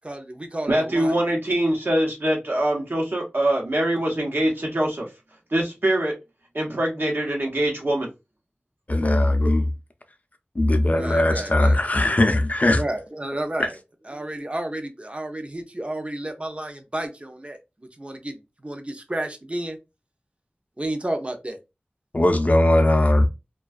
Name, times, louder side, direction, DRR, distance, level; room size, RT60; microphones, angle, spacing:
voice 1, 0.0-1.2 10.9-12.1 12.8-13.7 14.1-17.6 18.0-19.8 20.8-21.6, right 1 dB, 35° right, 0.5 m, -31 dB
voice 2, 0.7-5.1 5.5-6.1 6.5-8.1, right 1 dB, 75° right, 0.8 m, -23 dB
voice 3, 8.9-9.7 10.5-12.8 13.6-13.7 22.1-23.3, left 1 dB, 45° left, 0.4 m, -19 dB
2.3 x 2.3 x 2.4 m
wide cardioid pair, 45°, 4 cm